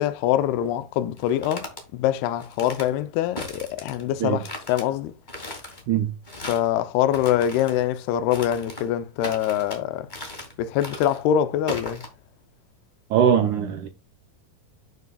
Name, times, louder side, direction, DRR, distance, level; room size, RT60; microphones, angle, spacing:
voice 1, 0.0-5.1 6.5-10.1 10.6-12.0, left 11 dB, 85° left, 2.7 m, -24 dB
sound 1, 1.2-1.8 2.4-2.9 3.4-4.0 4.4-4.8 5.3-5.8 6.2-6.7 7.1-7.8 8.3-8.9 9.2-9.8 10.1-10.5 10.8-11.2 11.7-12.1, left 1 dB, 20° left, 1.3 m, -37 dB
voice 2, 13.1-13.9, right 9 dB, 75° right, 1.8 m, -21 dB
11.0 x 6.6 x 2.3 m
omnidirectional pair, 4.5 m